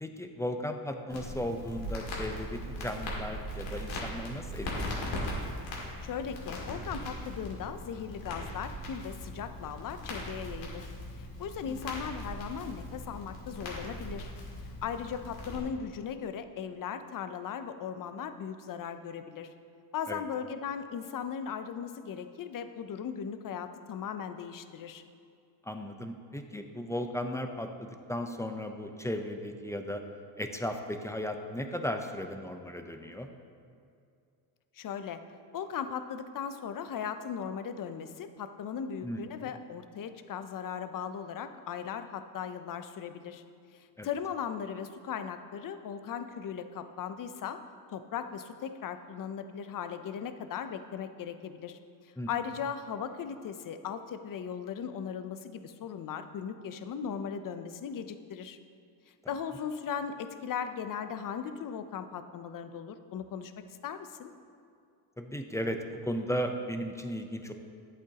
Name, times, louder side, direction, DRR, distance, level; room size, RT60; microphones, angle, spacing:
voice 1, 0.0-5.2 11.7-11.8 20.1-20.2 25.7-30.0 30.4-33.3 39.0-39.5 44.0-44.1 52.2-52.3 65.2-67.5, equal, 5° left, 5 dB, 0.6 m, -36 dB
Crackle, 1.1-15.6, left 1 dB, 75° left, 2.3 m, -39 dB
voice 2, 6.0-10.9 11.2-14.3 14.8-19.5 19.9-25.0 34.8-35.2 35.5-43.4 44.0-47.6 47.9-51.8 52.3-58.6 59.3-63.5 63.8-64.3, left 7 dB, 45° left, 10 dB, 0.7 m, -38 dB
11.0 x 8.3 x 2.9 m, 2.4 s
cardioid pair, 85°, 45 cm